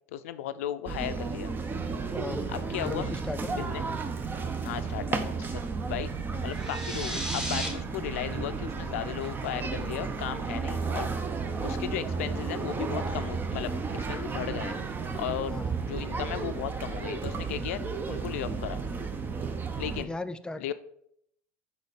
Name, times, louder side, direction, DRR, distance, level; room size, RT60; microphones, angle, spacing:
voice 1, 0.1-1.5 2.5-3.1 3.6-3.9 4.6-5.6 5.9-6.1 6.4-11.1 11.6-14.8 15.2-15.6 15.8-18.8 19.8-20.1 20.6-20.7, left 12 dB, 80° left, 12 dB, 0.4 m, -35 dB
sound 1, 0.9-20.1, right 4 dB, 25° right, 0.7 m, -33 dB
voice 2, 2.1-3.7 15.5-15.9 20.0-20.7, left 2 dB, 10° left, 12 dB, 0.4 m, -37 dB
sound 2, 6.5-7.7, equal, 10° right, 1.6 m, -34 dB
5.3 x 4.1 x 4.9 m, 0.72 s
hypercardioid pair, 85°, 7 cm